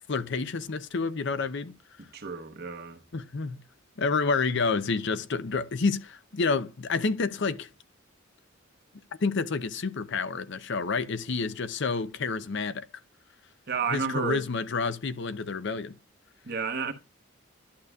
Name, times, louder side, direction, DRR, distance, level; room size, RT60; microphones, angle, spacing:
voice 1, 0.1-1.8 3.1-3.6 4.0-7.7 9.2-12.8 13.9-15.9, left 4 dB, 60° left, 0.6 m, -29 dB
voice 2, 2.1-3.0 13.7-14.4 16.4-16.9, right 5 dB, 50° right, 1.1 m, -31 dB
11.5 x 6.6 x 2.4 m
head